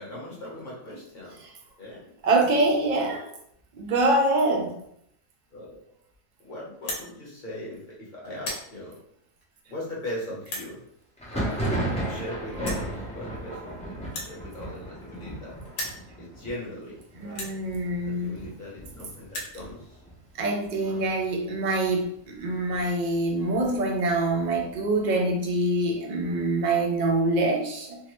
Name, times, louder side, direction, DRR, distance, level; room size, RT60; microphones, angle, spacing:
voice 1, 0.0-1.4 1.8-2.1 5.5-5.8 6.4-9.0 9.7-10.8 11.3-11.7 12.0-15.5 16.2-17.6 18.1-20.0 20.8-21.0, left 1 dB, 40° left, -5 dB, 0.9 m, -39 dB
voice 2, 2.2-3.3 3.7-4.7 17.2-18.4 20.4-28.0, right 2 dB, 65° right, 1 dB, 0.4 m, -25 dB
sound 1, 6.7-7.1 7.7-7.9 8.3-8.7 9.4-9.5 10.4-10.7 11.7-11.8 12.0-12.1 12.6-12.9 14.0-15.4 15.7-16.0 16.7-16.8 17.3-17.6 18.5-18.6 18.8-18.9 19.1-19.6, left 1 dB, 85° left, 1.4 m, -35 dB
Thunder, 11.2-20.7 20.9-21.6 21.9-22.9 23.3-25.0, right 1 dB, 10° left, 0.4 m, -35 dB
3.5 x 2.0 x 3.0 m, 0.72 s
omnidirectional pair, 1.4 m